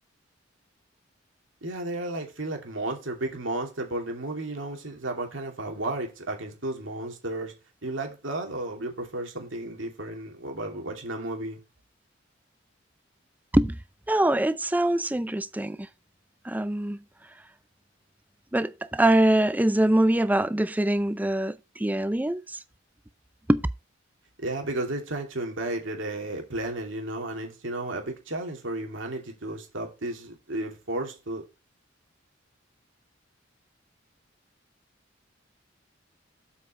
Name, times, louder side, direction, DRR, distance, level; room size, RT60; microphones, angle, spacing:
voice 1, 1.6-7.5 7.8-11.6 24.4-31.5, right 2 dB, 75° right, 2.6 m, -33 dB
voice 2, 14.1-15.8 16.5-17.0 18.5-22.4 23.5-23.6, right 1 dB, 10° right, 0.5 m, -23 dB
7.6 x 5.7 x 5.2 m
head